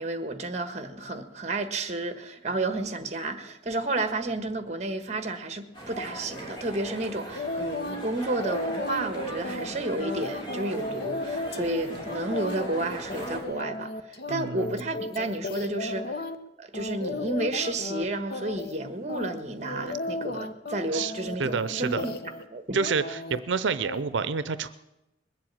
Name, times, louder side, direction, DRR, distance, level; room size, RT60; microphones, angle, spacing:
voice 1, 0.0-16.2 16.6-22.1 22.5-22.8, right 2 dB, 35° right, 8 dB, 1.4 m, -31 dB
sound 1, 5.7-13.4, right 1 dB, 30° left, 3.6 m, -39 dB
sound 2, 7.3-8.0 8.4-16.4 16.7-18.0 18.3-18.8 19.1-22.4 22.7-23.4 23.8-24.0, left 2 dB, 55° left, 0.9 m, -35 dB
voice 2, 14.3-14.7 20.9-21.1 21.4-22.1 22.7-24.7, right 5 dB, 85° right, 13 dB, 0.6 m, -28 dB
21.0 x 7.6 x 8.8 m, 0.96 s
head